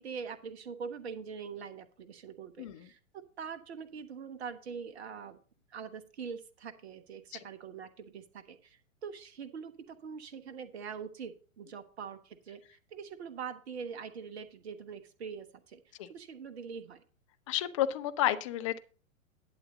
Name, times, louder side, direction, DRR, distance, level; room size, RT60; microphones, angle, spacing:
voice 1, 0.0-5.4 5.7-15.8 16.1-17.0, right 6 dB, 50° right, 11 dB, 1.2 m, -43 dB
voice 2, 17.5-18.8, left 12 dB, 25° left, 11 dB, 0.5 m, -31 dB
11.0 x 7.9 x 3.9 m, 0.39 s
figure-of-eight pair, 110°, 40 cm